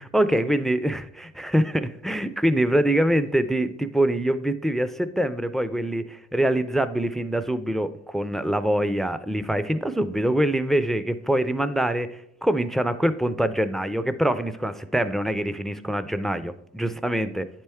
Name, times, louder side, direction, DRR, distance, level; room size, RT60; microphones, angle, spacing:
voice 1, 0.0-17.5, right 1 dB, ahead, 12 dB, 0.3 m, -24 dB
9.5 x 4.4 x 3.4 m, 0.76 s
cardioid pair, 90°, 30 cm